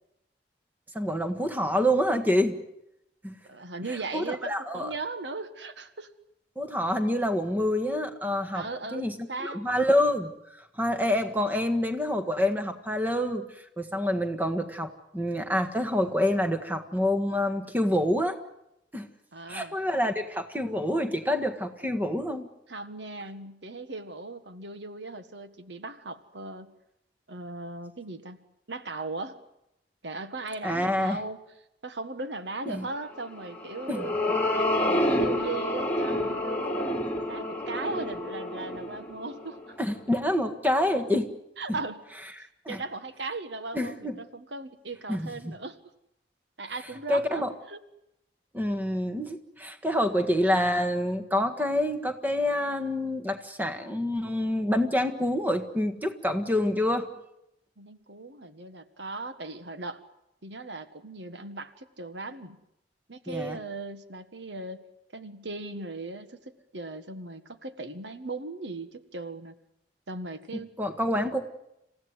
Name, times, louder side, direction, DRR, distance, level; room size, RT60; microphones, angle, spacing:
voice 1, 0.9-2.6 3.2-3.3 4.1-4.9 6.5-8.6 8.9-9.1 9.4-10.3 10.8-13.4 13.8-18.4 18.9-19.1 19.5-22.5 30.6-31.2 32.7-32.9 33.9-34.0 39.8-41.3 42.6-42.8 43.7-44.1 45.1-45.5 47.1-47.5 48.5-57.1 63.3-63.6 70.8-71.5, left 1 dB, 10° right, 7 dB, 1.6 m, -27 dB
voice 2, 3.5-6.1 8.5-9.6 19.3-19.7 22.7-26.7 27.3-28.4 28.7-29.4 30.0-31.4 31.8-34.1 34.5-36.9 37.3-39.8 41.6-42.0 42.7-45.8 46.6-47.8 57.8-60.0 60.4-62.6 63.1-64.8 65.1-69.5 70.1-70.7 71.1-71.3, right 3 dB, 80° right, 10 dB, 1.7 m, -38 dB
sound 1, 33.4-39.9, left 1 dB, 10° left, 2.8 m, -29 dB
27.5 x 16.0 x 9.6 m, 0.85 s
head